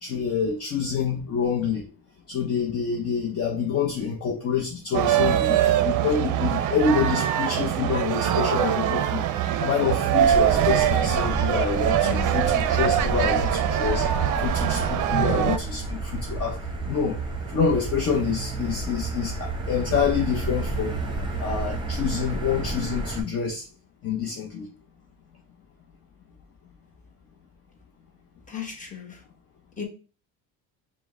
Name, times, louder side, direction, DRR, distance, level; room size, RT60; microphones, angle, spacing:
voice 1, 0.0-1.9 2.3-14.1 14.4-16.6 16.9-17.2 17.5-21.0 21.4-23.6 24.0-24.7, left 6 dB, 40° left, 0 dB, 0.7 m, -27 dB
sound 1, 4.9-15.6, right 11 dB, 55° right, 0.5 m, -23 dB
Motor vehicle (road), 10.2-23.2, right 3 dB, 15° right, 0.9 m, -30 dB
voice 2, 12.0-12.4 28.5-29.2 29.8-29.9, left 8 dB, 20° left, 1 dB, 1.1 m, -34 dB
5.1 x 2.2 x 3.5 m, 0.37 s
cardioid pair, 125°, 38 cm